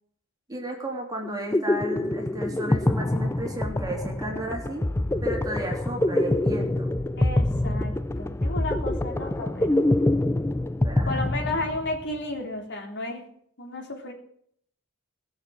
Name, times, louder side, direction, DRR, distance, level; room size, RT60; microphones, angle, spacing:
voice 1, 0.5-4.8 5.2-6.9 10.8-11.2, right 1 dB, 20° right, 0 dB, 3.1 m, -33 dB
sound 1, 1.2-12.0, left 1 dB, 15° left, 0.4 m, -25 dB
voice 2, 7.2-9.8 11.0-13.3 13.6-14.1, left 2 dB, 60° left, 1 dB, 3.5 m, -33 dB
19.0 x 6.9 x 6.4 m, 0.65 s
head